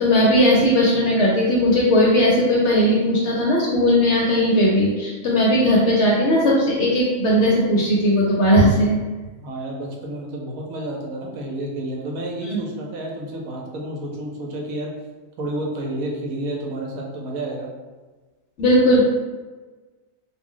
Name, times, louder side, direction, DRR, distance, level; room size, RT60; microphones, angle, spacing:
voice 1, 0.0-9.0 12.4-12.6 18.6-19.0, equal, 60° left, -4 dB, 0.8 m, -17 dB
voice 2, 9.4-14.9 15.4-17.7, right 1 dB, 80° right, -1 dB, 1.1 m, -30 dB
2.5 x 2.1 x 3.7 m, 1.3 s
omnidirectional pair, 1.5 m